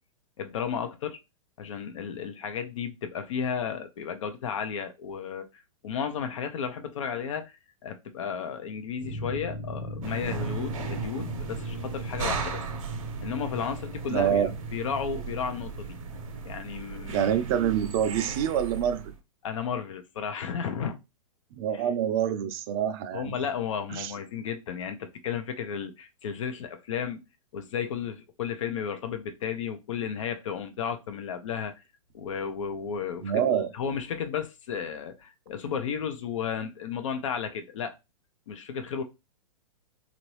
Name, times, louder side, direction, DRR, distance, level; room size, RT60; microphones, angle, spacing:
voice 1, 0.4-1.2 1.6-5.5 5.8-7.5 7.8-12.6 13.2-14.4 14.7-15.9 16.4-17.3 19.4-21.0 21.7-21.8 23.1-27.2 27.5-31.7 32.1-33.4 33.7-37.9 38.5-39.0, left 7 dB, 60° left, 0.6 m, -33 dB
sound 1, 9.0-16.4, left 1 dB, 90° left, 1.3 m, -39 dB
Woman walking down stairs, 10.0-19.2, right 6 dB, 65° right, 0.8 m, -36 dB
voice 2, 14.1-14.5 17.1-19.1 21.6-23.3 23.9-24.1 33.2-33.7, right 9 dB, 40° right, 0.5 m, -26 dB
3.0 x 2.5 x 3.0 m
figure-of-eight pair, 110°, 18 cm